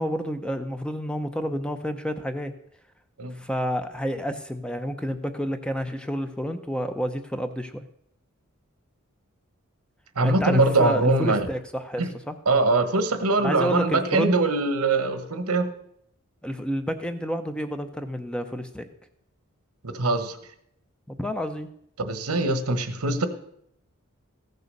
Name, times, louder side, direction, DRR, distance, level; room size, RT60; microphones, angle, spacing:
voice 1, 0.0-2.5 3.3-7.9 10.2-12.4 13.4-14.3 16.4-18.9 21.1-21.7, equal, 5° left, 8 dB, 0.6 m, -29 dB
voice 2, 10.2-11.5 12.0-12.1 12.5-15.7 19.8-20.4 22.0-23.3, right 2 dB, 90° right, 11 dB, 1.2 m, -22 dB
15.0 x 6.7 x 6.7 m, 0.71 s
head